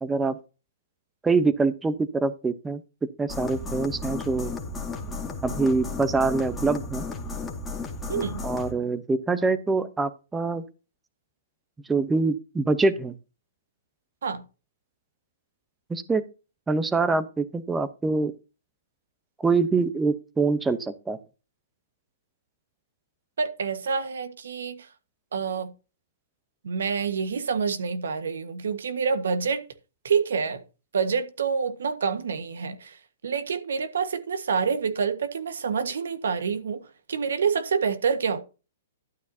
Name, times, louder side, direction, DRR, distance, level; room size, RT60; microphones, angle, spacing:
voice 1, 0.0-0.4 1.2-2.8 3.2-4.5 5.4-7.1 8.4-10.6 11.9-13.1 15.9-16.2 16.7-18.3 19.4-21.2, right 3 dB, 10° right, 0.9 m, -24 dB
sound 1, 3.3-8.7, left 3 dB, 10° left, 2.1 m, -34 dB
voice 2, 8.1-8.4 14.2-14.4 23.4-24.9 25.3-25.7 26.6-29.6 30.0-30.6 30.9-33.0 33.2-38.4, right 6 dB, 80° right, 1.5 m, -27 dB
12.0 x 9.3 x 2.8 m
hypercardioid pair, 140°, 0 cm